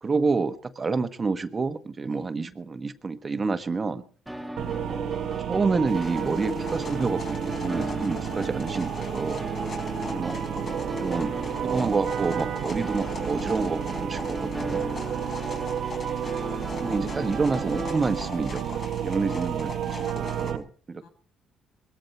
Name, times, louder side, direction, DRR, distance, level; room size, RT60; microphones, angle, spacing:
voice 1, 0.0-4.0 4.9-5.1 5.5-9.4 10.1-10.4 11.0-11.4 11.6-14.8 16.8-21.1, right 4 dB, 35° right, 11 dB, 1.3 m, -28 dB
sound 1, 4.3-18.0, equal, 5° right, 1.6 m, -37 dB
sound 2, 4.6-20.6, right 10 dB, 70° right, 1.1 m, -31 dB
sound 3, 5.9-20.5, left 4 dB, 50° left, 4.7 m, -41 dB
voice 2, 9.6-10.0 15.0-15.9 21.0-21.1, left 4 dB, 90° left, 6 dB, 3.4 m, -54 dB
20.5 x 14.5 x 4.4 m, 0.41 s
supercardioid pair, 65°, 0 cm